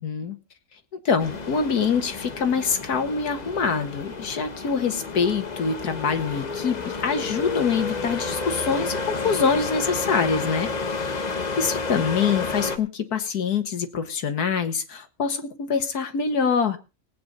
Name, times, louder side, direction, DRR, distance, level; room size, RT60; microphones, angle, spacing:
voice 1, 0.0-0.4 0.9-11.2 11.6-16.8, left 5 dB, 80° left, 7 dB, 2.0 m, -25 dB
sound 1, 1.2-12.8, left 4 dB, 35° left, 0.9 m, -31 dB
19.0 x 8.8 x 4.0 m, 0.30 s
omnidirectional pair, 1.6 m